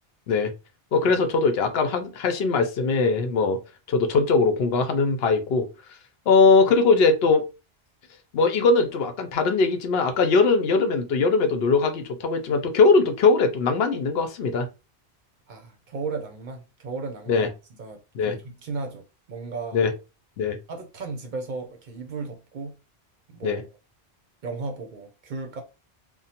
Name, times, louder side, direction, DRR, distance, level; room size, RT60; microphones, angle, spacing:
voice 1, 0.9-3.6 3.9-5.7 6.3-7.5 8.3-14.7 17.3-17.5 18.1-18.4 19.7-19.9 20.4-20.6 23.4-23.6, left 4 dB, 75° left, 0.8 m, -21 dB
voice 2, 15.5-19.8 20.7-22.7 23.3-23.6 24.4-25.6, right 4 dB, 55° right, 0.6 m, -35 dB
3.0 x 2.0 x 2.8 m
omnidirectional pair, 1.0 m